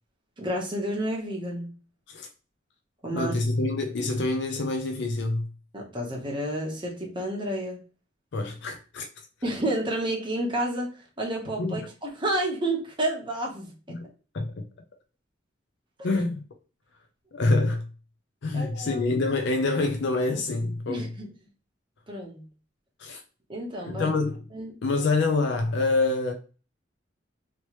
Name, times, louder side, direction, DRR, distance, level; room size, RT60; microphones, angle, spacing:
voice 1, 0.4-1.7 3.0-3.3 5.7-7.8 9.4-14.0 18.5-19.1 20.9-21.3 22.1-22.4 23.5-24.1 24.5-24.7, right 1 dB, 25° right, 1.0 m, -30 dB
voice 2, 3.1-5.5 8.3-9.1 11.6-11.9 13.9-14.0 14.3-14.5 16.0-16.4 17.3-17.8 18.4-21.1 23.0-23.2 23.9-24.4 24.8-26.3, left 3 dB, 65° left, 0.5 m, -26 dB
3.1 x 2.9 x 3.0 m
head